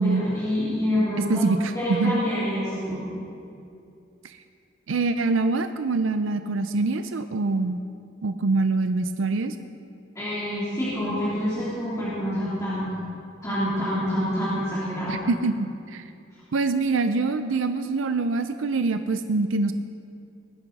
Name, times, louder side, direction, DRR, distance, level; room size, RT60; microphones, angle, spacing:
voice 1, 0.0-1.4 1.7-3.0 10.1-12.9 13.4-15.3, equal, 15° left, -11 dB, 3.4 m, -27 dB
voice 2, 1.3-2.2 4.2-4.4 4.9-7.8 8.2-9.6 15.1-16.0 16.5-19.7, right 3 dB, 70° right, 9 dB, 0.5 m, -24 dB
19.5 x 10.5 x 4.1 m, 2.5 s
head